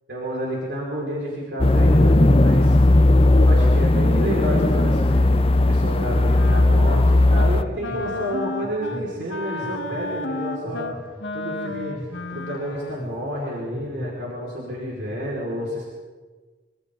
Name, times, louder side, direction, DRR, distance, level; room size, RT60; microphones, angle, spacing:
voice 1, 0.1-2.8 3.3-10.9 11.3-15.8, equal, 75° right, -5 dB, 5.8 m, -30 dB
sound 1, 1.6-7.6, left 2 dB, 30° left, 0.8 m, -16 dB
Wind instrument woodwind instrument, 5.9-7.0 7.3-7.6 7.8-13.1, left 2 dB, 85° left, 1.8 m, -32 dB
sound 2, 7.9-8.1 8.6-9.0 9.6-10.0 10.6-11.0 11.7-12.0 12.7-13.1 13.7-14.1 14.6-15.1, equal, 10° left, 3.3 m, -37 dB
26.0 x 26.0 x 4.1 m, 1.4 s
head